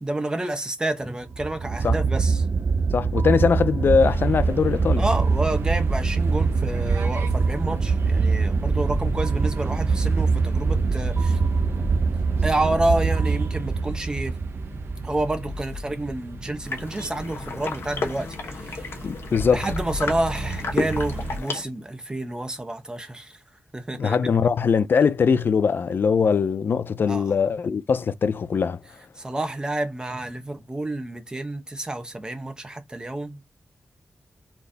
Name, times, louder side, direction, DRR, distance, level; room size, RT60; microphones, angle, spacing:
voice 1, 0.0-2.4 5.0-11.4 12.4-14.3 15.0-18.4 18.7-18.8 19.5-23.4 23.7-24.2 27.1-27.3 29.2-33.4, right 1 dB, 20° right, 1.0 m, -29 dB
sound 1, 1.3-15.5, right 5 dB, 50° right, 0.4 m, -24 dB
voice 2, 2.9-5.1 19.0-19.7 24.0-28.8, left 6 dB, 60° left, 0.4 m, -21 dB
sound 2, 4.0-21.4, right 1 dB, 75° right, 0.9 m, -33 dB
sound 3, 16.6-21.6, left 4 dB, 85° left, 1.1 m, -33 dB
4.1 x 3.4 x 2.7 m
wide cardioid pair, 120°, 4 cm